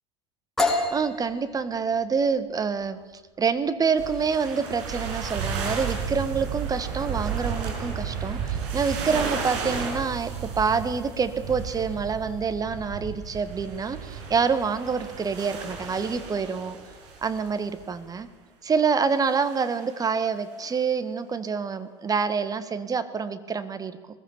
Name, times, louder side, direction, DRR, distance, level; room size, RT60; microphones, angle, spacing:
sound 1, 0.6-8.2, left 2 dB, 5° left, 4.9 m, -33 dB
voice 1, 0.9-3.0 3.4-16.8 17.2-18.3 18.6-24.0, right 5 dB, 25° right, 11 dB, 1.8 m, -27 dB
sound 2, 4.0-17.9 19.2-20.0 20.5-20.7, right 6 dB, 55° right, 6.4 m, -33 dB
23.0 x 21.0 x 7.3 m, 1.3 s
figure-of-eight pair, 70°, 15 cm